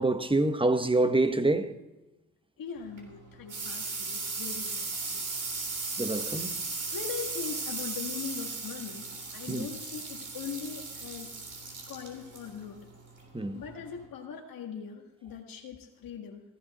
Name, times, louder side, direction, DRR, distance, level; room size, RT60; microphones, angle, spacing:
voice 1, 0.0-1.8 6.0-6.6 9.5-9.7 13.3-13.6, right 2 dB, 15° right, 1.2 m, -26 dB
voice 2, 2.6-5.2 6.9-11.3 11.9-12.8 13.5-16.4, left 7 dB, 70° left, 1.7 m, -41 dB
sound 1, 2.8-14.1, right 3 dB, 55° right, 3.6 m, -37 dB
15.5 x 12.0 x 4.3 m
supercardioid pair, 55°, 36 cm